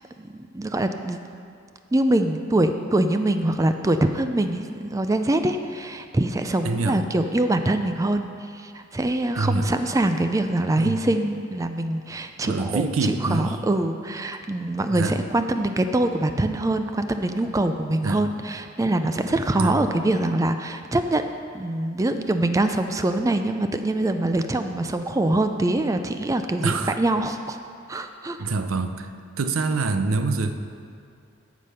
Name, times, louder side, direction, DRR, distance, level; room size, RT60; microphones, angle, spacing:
voice 1, 0.5-1.2 1.9-8.3 8.5-21.2 21.5-27.6 27.9-28.5, right 1 dB, 15° right, 8 dB, 0.3 m, -24 dB
voice 2, 6.6-7.0 9.4-9.7 10.8-11.0 12.4-13.6 14.9-15.2 18.0-18.2 19.6-19.8 26.6-27.0 28.4-29.1 29.4-30.5, right 3 dB, 90° right, 8 dB, 0.6 m, -25 dB
13.5 x 5.1 x 5.6 m, 2.4 s
head